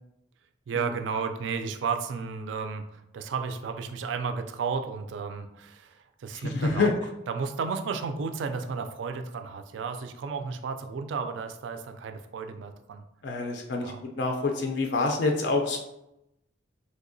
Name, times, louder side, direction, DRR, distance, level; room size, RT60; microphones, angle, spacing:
voice 1, 0.7-6.9 7.3-13.0 13.8-14.0, right 5 dB, 75° right, 7 dB, 0.3 m, -33 dB
voice 2, 6.3-7.0 13.2-15.8, left 3 dB, 65° left, 2 dB, 0.4 m, -27 dB
3.4 x 2.7 x 2.6 m, 0.85 s
head